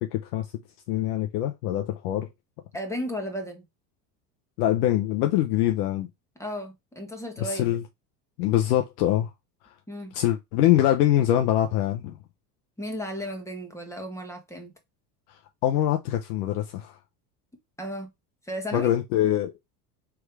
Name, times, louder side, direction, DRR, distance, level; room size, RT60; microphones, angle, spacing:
voice 1, 0.0-0.5 0.9-2.3 4.6-6.1 7.4-7.8 8.4-9.3 10.1-12.2 15.3-17.0 18.7-19.6, left 12 dB, 75° left, 0.8 m, -24 dB
voice 2, 2.7-3.7 6.4-7.8 9.9-10.1 12.8-14.7 17.8-18.1 18.4-18.9, equal, 5° left, 1.5 m, -34 dB
3.6 x 3.1 x 4.6 m
hypercardioid pair, 95°, 46 cm